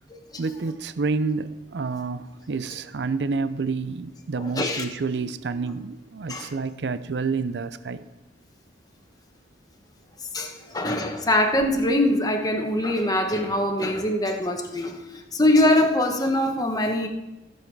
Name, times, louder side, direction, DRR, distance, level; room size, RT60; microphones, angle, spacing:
voice 1, 0.4-8.0 10.5-10.8, right 4 dB, 75° right, 13 dB, 0.5 m, -29 dB
voice 2, 4.5-4.8 6.3-6.5 10.3-17.1, left 1 dB, 20° left, 3 dB, 1.1 m, -23 dB
15.0 x 7.2 x 4.7 m, 1.0 s
head